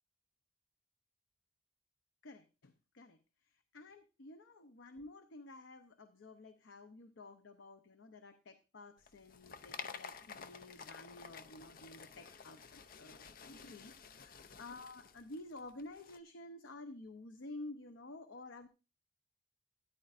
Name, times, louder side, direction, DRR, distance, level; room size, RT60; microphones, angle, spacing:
voice 1, 2.2-3.2 3.7-18.7, left 2 dB, 80° left, 9 dB, 0.7 m, -52 dB
sound 1, 9.0-16.2, left 6 dB, 50° left, 0.5 m, -51 dB
13.0 x 9.8 x 2.5 m, 0.30 s
head